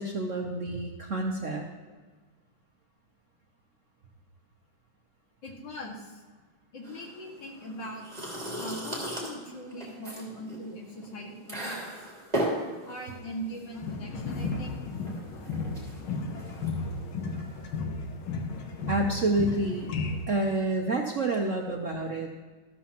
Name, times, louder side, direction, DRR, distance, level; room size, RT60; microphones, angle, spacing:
voice 1, 0.0-1.7 18.9-19.9 20.3-22.3, right 2 dB, 55° right, 2 dB, 0.9 m, -28 dB
voice 2, 5.4-6.2 6.7-8.0 8.6-11.8 12.9-14.8 21.6-21.7, equal, 60° left, -1 dB, 2.7 m, -40 dB
sound 1, 6.8-17.8, right 1 dB, 20° right, 3.1 m, -37 dB
sound 2, 13.7-20.3, left 3 dB, 85° left, 1.9 m, -34 dB
13.5 x 13.0 x 3.0 m, 1.4 s
omnidirectional pair, 2.2 m